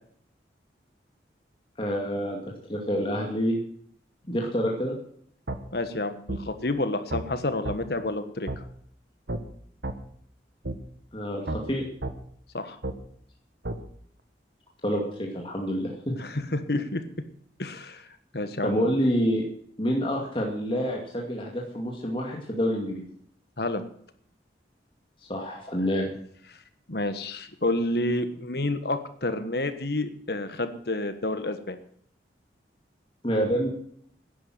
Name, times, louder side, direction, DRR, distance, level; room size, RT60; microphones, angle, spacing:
voice 1, 1.8-3.6 4.3-5.0 11.1-11.9 14.8-16.2 18.6-19.4 19.8-23.0 25.3-26.1 33.2-33.7, equal, 30° left, -1 dB, 2.4 m, -27 dB
sound 1, 5.5-5.6 6.3-6.4 7.1-7.3 7.7-7.8 8.5-8.6 9.3-9.4 9.8-10.0 10.7-10.8 11.5-11.6 12.0-12.2 12.8-13.0 13.7-13.8, right 2 dB, 80° right, 1.4 m, -31 dB
voice 2, 5.7-8.5 12.5-12.8 16.2-17.0 17.6-18.0 18.3-18.9 23.6-23.8 26.9-31.8, left 2 dB, 65° left, 10 dB, 1.4 m, -29 dB
11.5 x 10.5 x 7.8 m, 0.62 s
head